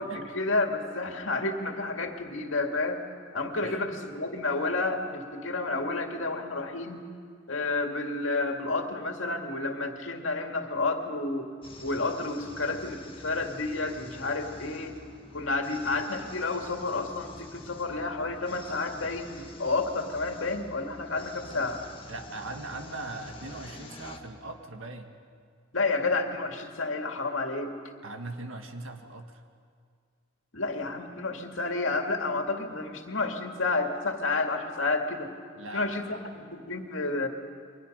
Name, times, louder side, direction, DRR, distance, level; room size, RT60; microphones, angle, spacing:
voice 1, 0.0-3.0 3.3-7.1 7.5-11.5 11.8-14.9 15.3-21.8 25.7-27.7 30.5-35.3 35.7-37.3, left 3 dB, 70° left, 3 dB, 2.2 m, -30 dB
voice 2, 3.6-4.0 22.1-25.1 28.0-29.4 35.6-36.2, right 2 dB, 80° right, 5 dB, 1.9 m, -40 dB
sound 1, 11.6-24.2, left 2 dB, 25° left, 1.6 m, -47 dB
29.5 x 23.5 x 5.4 m, 2.1 s
head